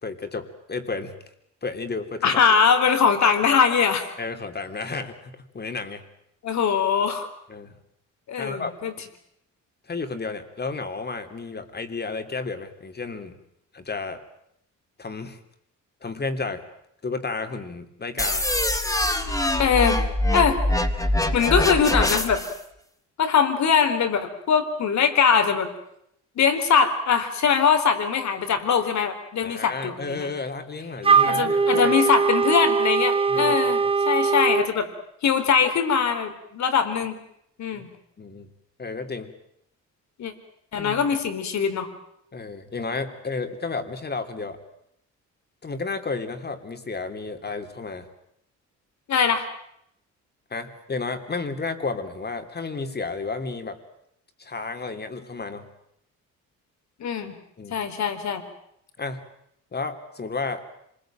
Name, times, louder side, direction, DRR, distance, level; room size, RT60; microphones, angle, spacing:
voice 1, 0.0-1.1 1.6-2.4 4.2-6.0 7.5-7.7 8.4-8.7 9.9-13.4 13.7-14.2 15.0-15.4 16.0-16.6 17.0-18.5 29.4-31.9 33.3-34.0 38.2-38.5 38.8-39.3 40.8-41.2 42.3-44.6 45.6-48.1 50.5-53.8 54.4-55.7 57.6-57.8 59.0-59.2 59.7-60.6, left 4 dB, 35° left, 7 dB, 3.3 m, -32 dB
voice 2, 2.2-4.1 6.4-7.3 8.3-8.9 19.6-20.0 20.3-20.6 21.3-22.4 23.2-25.7 26.4-30.3 31.2-34.9 35.2-37.2 37.6-37.9 40.2-40.3 40.7-41.9 49.1-49.4 57.0-57.4 57.7-58.4, left 6 dB, 65° left, 8 dB, 4.0 m, -22 dB
sound 1, 18.2-22.6, left 1 dB, 10° left, 3.5 m, -24 dB
Wind instrument woodwind instrument, 31.0-34.7, right 5 dB, 20° right, 1.1 m, -21 dB
26.5 x 21.0 x 9.1 m, 0.76 s
cardioid pair, 90°, 30 cm